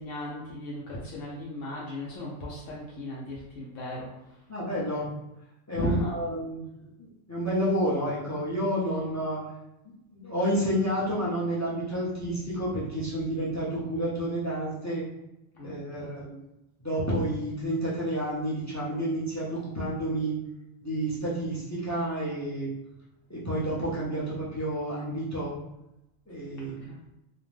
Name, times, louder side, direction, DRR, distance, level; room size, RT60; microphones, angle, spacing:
voice 1, 0.0-4.1 5.7-6.2 15.6-15.7 16.0-16.2 26.6-27.0, left 1 dB, 75° left, -5 dB, 0.9 m, -35 dB
voice 2, 4.5-5.1 5.7-6.6 7.0-9.4 10.1-15.0 15.6-16.3 16.8-20.4 20.8-22.7 23.3-25.5 26.3-26.8, right 1 dB, 20° left, -7 dB, 0.4 m, -30 dB
2.5 x 2.1 x 3.2 m, 0.91 s
omnidirectional pair, 1.4 m